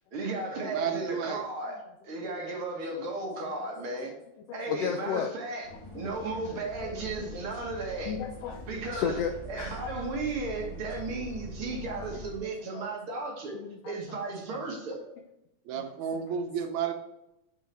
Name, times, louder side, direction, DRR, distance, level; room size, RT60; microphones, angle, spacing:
voice 1, 0.1-4.1 4.5-8.2 8.7-9.2 9.5-13.5 13.8-15.0, right 3 dB, 55° right, 0 dB, 1.9 m, -35 dB
voice 2, 0.7-1.4 15.7-16.9, right 7 dB, 75° right, 5 dB, 2.1 m, -32 dB
voice 3, 4.5-5.3 6.1-6.2 6.8-7.3 8.1-8.6 8.9-10.2 11.6-12.3 12.7-12.9 13.5-14.2 14.5-14.7 15.7-15.9, left 7 dB, 80° left, 5 dB, 1.4 m, -35 dB
Bus, 5.6-12.4, right 1 dB, 45° left, 1.9 m, -43 dB
6.2 x 5.4 x 3.4 m, 0.87 s
omnidirectional pair, 3.4 m